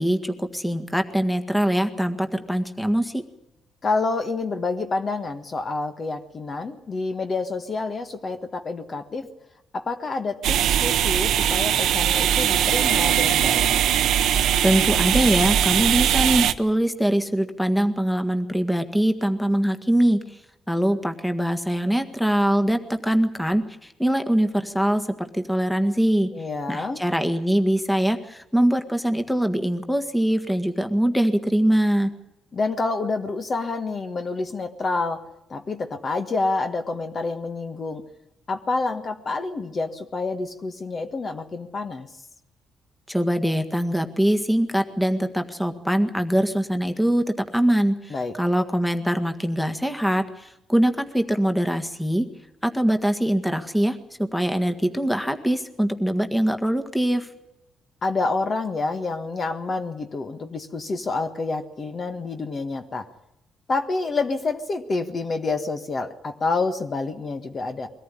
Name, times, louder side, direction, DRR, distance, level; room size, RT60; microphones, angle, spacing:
voice 1, 0.0-3.2 14.6-20.4 20.7-26.3 26.7-32.1 43.1-47.3 47.5-52.3 52.6-57.3, right 1 dB, 5° left, 7 dB, 1.7 m, -23 dB
voice 2, 3.8-9.3 9.7-13.7 26.3-27.0 32.5-35.2 35.5-38.0 38.5-42.1 48.1-48.3 58.0-63.1 63.7-67.9, left 3 dB, 40° left, 6 dB, 1.5 m, -28 dB
sound 1, 10.4-16.5, right 10 dB, 80° right, 0.8 m, -20 dB
22.5 x 14.0 x 10.0 m, 0.87 s
cardioid pair, 90°, 0 cm